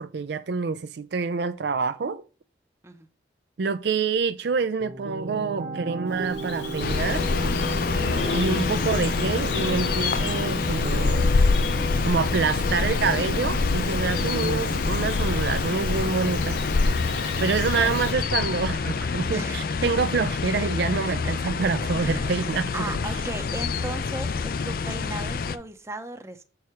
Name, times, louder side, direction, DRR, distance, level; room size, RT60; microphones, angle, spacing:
voice 1, 0.0-2.2 3.6-7.3 8.3-11.3 12.0-16.6 17.4-22.7, right 5 dB, 65° right, 0.4 m, -27 dB
sound 1, 4.4-13.6, right 3 dB, 45° right, 1.1 m, -39 dB
Bird vocalization bird call bird song, 6.1-18.1, left 2 dB, 80° left, 2.1 m, -31 dB
sound 2, 6.8-25.6, left 4 dB, 50° left, 0.4 m, -26 dB
voice 2, 19.3-19.7 21.1-21.3 22.0-26.4, right 2 dB, 15° right, 0.7 m, -36 dB
6.9 x 4.7 x 4.8 m
head